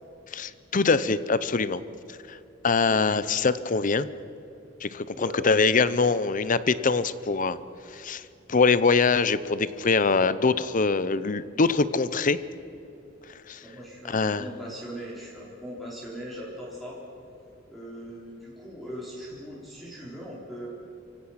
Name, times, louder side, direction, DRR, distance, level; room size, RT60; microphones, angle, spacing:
voice 1, 0.3-1.8 2.1-2.4 2.6-4.1 4.8-7.6 7.9-8.2 8.5-12.4 13.5-13.6 14.1-14.5, left 4 dB, 40° left, 15 dB, 0.7 m, -23 dB
voice 2, 2.8-3.3 5.1-5.7 6.0-6.1 13.6-17.0 17.7-20.7, equal, ahead, -6 dB, 4.1 m, -40 dB
29.5 x 16.5 x 5.8 m, 2.8 s
head